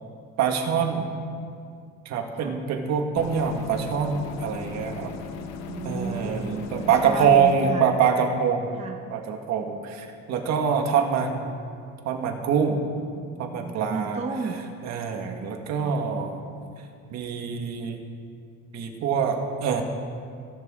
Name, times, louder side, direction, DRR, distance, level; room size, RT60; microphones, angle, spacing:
voice 1, 0.4-1.1 2.1-5.1 5.8-8.7 9.1-11.5 12.0-12.8 13.4-14.2 14.8-16.4 17.1-18.0 18.7-19.8, right 6 dB, 60° right, 4 dB, 1.8 m, -25 dB
sound 1, 3.2-7.6, left 6 dB, 60° left, 1.2 m, -38 dB
voice 2, 5.3-7.9 8.7-9.0 13.0-14.6 15.8-16.0, right 4 dB, 20° right, 4 dB, 0.8 m, -34 dB
28.5 x 11.5 x 3.8 m, 2.3 s
cardioid pair, 155°, 31 cm